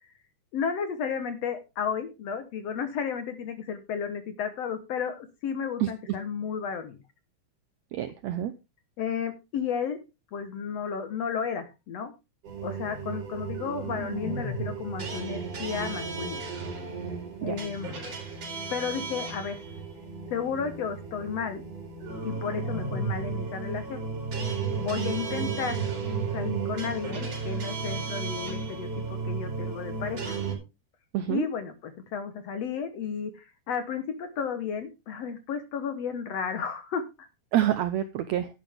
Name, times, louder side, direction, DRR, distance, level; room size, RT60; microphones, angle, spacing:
voice 1, 0.5-7.0 9.0-10.0 10.3-12.1 12.6-16.5 17.4-17.9 18.7-19.6 20.3-21.6 22.2-24.0 24.8-25.8 26.3-30.3 31.3-37.3, left 7 dB, 60° left, 9 dB, 1.9 m, -33 dB
voice 2, 7.9-8.5 17.4-17.5 31.1-31.5 37.5-38.5, right 12 dB, 80° right, 11 dB, 1.6 m, -27 dB
sound 1, 12.4-30.6, right 4 dB, 45° right, 5.0 m, -34 dB
11.0 x 10.5 x 3.5 m, 0.27 s
omnidirectional pair, 3.9 m